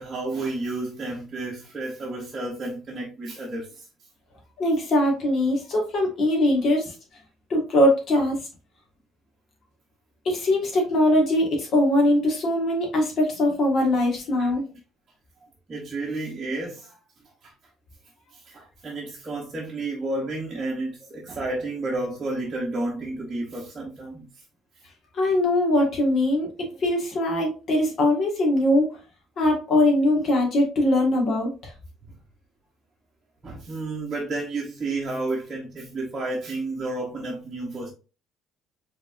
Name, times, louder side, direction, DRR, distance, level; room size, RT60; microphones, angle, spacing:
voice 1, 0.0-3.8 14.4-14.5 15.7-16.9 17.4-17.5 18.3-24.3 33.4-37.9, right 2 dB, 25° right, 1.1 m, -31 dB
voice 2, 4.6-6.9 7.5-8.4 10.3-14.6 25.1-28.9 29.4-31.7, left 1 dB, 40° left, 1.9 m, -21 dB
5.2 x 3.6 x 2.6 m
cardioid pair, 170°, 0 cm